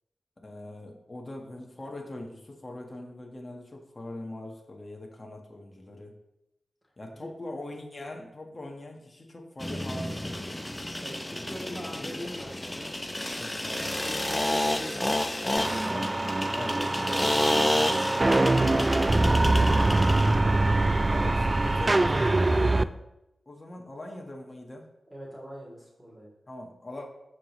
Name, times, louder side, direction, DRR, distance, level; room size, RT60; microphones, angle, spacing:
voice 1, 0.4-6.1 7.0-10.5 11.2-12.3 13.4-14.0 15.9-16.2 16.5-16.8 18.6-18.9 21.1-23.0 23.4-24.9 26.5-27.1, left 1 dB, 35° left, 0 dB, 1.6 m, -41 dB
sound 1, 9.6-20.4, left 1 dB, 15° left, 0.7 m, -30 dB
voice 2, 11.0-12.9 13.6-15.2 15.5-16.0 16.7-17.8 18.3-18.7 25.1-26.3, equal, 5° right, -5 dB, 3.2 m, -44 dB
sound 2, 15.6-22.8, right 2 dB, 30° right, 0.3 m, -23 dB
14.0 x 5.1 x 3.2 m, 0.86 s
cardioid pair, 65°, 0 cm